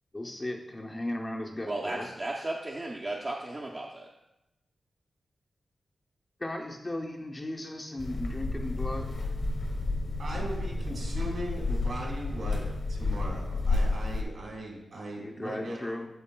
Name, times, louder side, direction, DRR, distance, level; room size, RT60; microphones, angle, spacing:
voice 1, 0.1-2.1 6.4-9.2 15.2-16.1, left 1 dB, 20° left, 1 dB, 0.5 m, -36 dB
voice 2, 1.6-4.1, right 2 dB, 25° right, -2 dB, 0.5 m, -35 dB
sound 1, 8.0-14.2, left 3 dB, 45° left, 0.9 m, -31 dB
voice 3, 10.2-15.9, right 1 dB, 60° right, 0 dB, 1.6 m, -39 dB
12.5 x 4.6 x 2.2 m, 0.92 s
wide cardioid pair, 160°, 0 cm